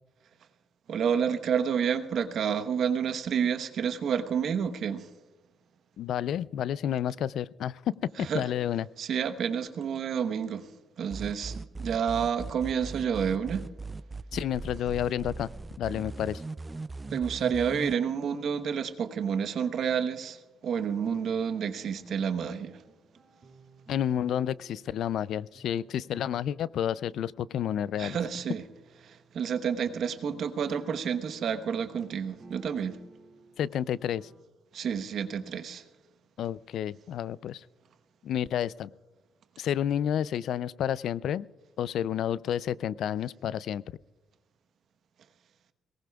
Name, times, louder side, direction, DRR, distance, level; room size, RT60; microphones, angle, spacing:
voice 1, 0.9-5.1 8.2-8.5 9.0-10.7 11.0-13.7 17.1-22.8 28.0-28.6 29.0-33.0 34.7-35.8, right 7 dB, 65° right, 1.0 m, -29 dB
voice 2, 6.0-7.8 8.2-8.9 14.3-15.5 15.8-16.4 23.9-28.2 33.6-34.3 36.4-37.6 38.2-38.9 39.6-41.5 41.8-43.8, left 10 dB, 75° left, 0.3 m, -30 dB
sound 1, 11.1-17.9, right 3 dB, 25° right, 0.4 m, -39 dB
sound 2, 21.2-25.3 25.5-34.4, right 4 dB, 40° right, 2.3 m, -56 dB
22.5 x 18.5 x 2.3 m
cardioid pair, 90°, 0 cm